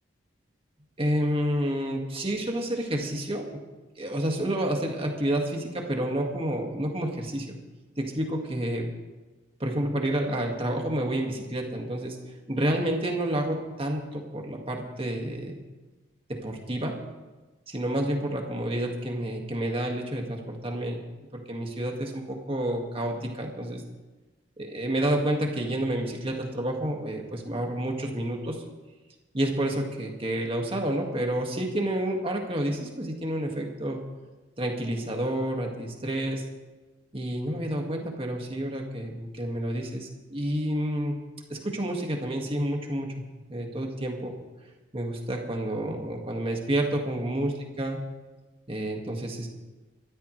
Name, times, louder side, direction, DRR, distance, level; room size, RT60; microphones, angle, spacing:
voice 1, 1.0-3.4 4.0-7.5 8.0-8.9 9.6-12.2 12.5-15.6 16.4-17.0 17.7-21.0 21.3-23.8 24.6-28.6 29.3-34.0 34.6-36.4 37.1-41.2 41.5-43.1 43.5-44.3 44.9-48.0 48.7-49.5, right 1 dB, 30° right, 1 dB, 2.0 m, -29 dB
24.0 x 13.0 x 3.3 m, 1.2 s
head